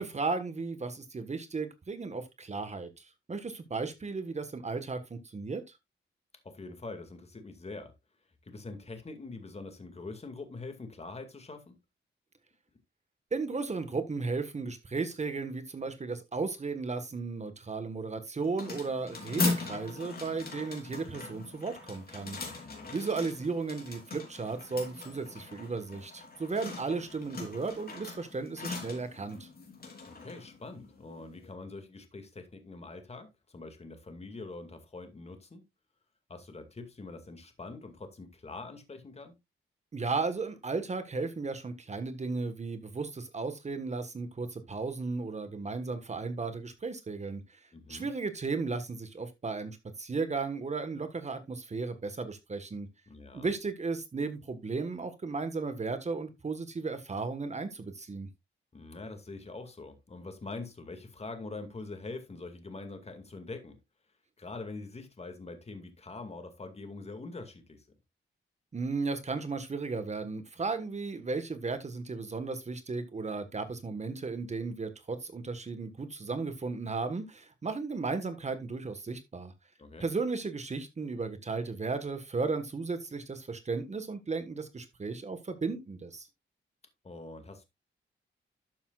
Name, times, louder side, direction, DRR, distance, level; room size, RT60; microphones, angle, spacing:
voice 1, 0.0-5.6 13.3-22.6 22.9-29.5 39.9-47.6 47.9-52.9 53.3-58.3 68.7-79.5 80.0-86.3, right 4 dB, 35° right, 1.5 m, -35 dB
voice 2, 6.4-7.9 8.4-11.8 22.4-23.0 30.1-35.6 36.3-39.4 47.7-48.1 53.1-53.5 58.7-63.8 64.4-67.9 79.8-80.1 87.0-87.6, left 3 dB, 30° left, 2.2 m, -44 dB
sound 1, 18.4-31.5, left 3 dB, 50° left, 3.4 m, -39 dB
12.5 x 7.0 x 2.4 m
cardioid pair, 95°, 20 cm